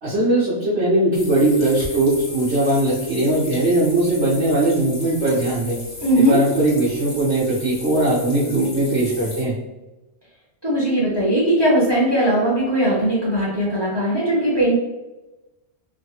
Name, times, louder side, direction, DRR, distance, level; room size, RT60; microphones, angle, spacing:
voice 1, 0.0-5.8 6.2-9.5, right 1 dB, 65° right, -10 dB, 1.2 m, -19 dB
sound 1, 1.1-9.4, left 1 dB, 65° left, 1.2 m, -36 dB
voice 2, 6.0-6.4 10.6-14.7, right 1 dB, 25° right, -7 dB, 0.9 m, -19 dB
3.2 x 2.2 x 2.8 m, 1.0 s
omnidirectional pair, 1.2 m